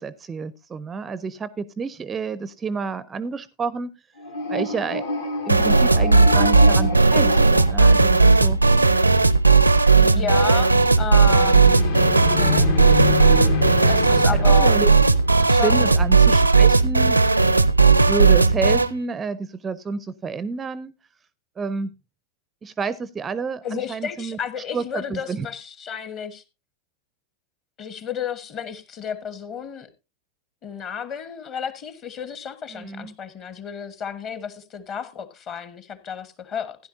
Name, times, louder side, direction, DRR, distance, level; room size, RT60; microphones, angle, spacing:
voice 1, 0.0-3.9 4.5-5.0 5.5-8.6 10.1-10.4 14.1-14.9 15.4-17.2 18.0-20.9 21.6-21.9 22.6-24.4 24.7-25.5 32.7-33.2, right 5 dB, 20° right, 0.5 m, -29 dB
sound 1, 4.2-8.5 11.1-16.1, left 4 dB, 65° left, 1.8 m, -28 dB
sound 2, 5.5-18.9, right 4 dB, 85° right, 0.5 m, -16 dB
voice 2, 10.0-11.9 12.3-12.7 13.9-14.8 15.5-15.9 23.6-26.4 27.8-29.9 30.6-36.8, left 7 dB, 35° left, 1.2 m, -32 dB
15.5 x 10.5 x 2.6 m
figure-of-eight pair, 90°, 0 cm